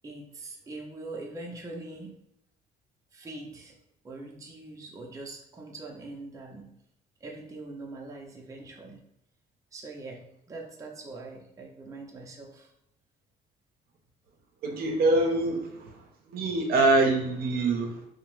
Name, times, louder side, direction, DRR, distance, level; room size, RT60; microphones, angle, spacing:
voice 1, 0.0-2.2 3.1-3.7 4.0-6.7 7.2-9.0 9.7-10.2 10.5-12.7, right 2 dB, 20° right, 0 dB, 0.5 m, -42 dB
voice 2, 14.6-16.0 16.3-18.1, right 2 dB, 65° right, 2 dB, 0.6 m, -25 dB
2.8 x 2.0 x 3.0 m, 0.78 s
cardioid pair, 110°, 17 cm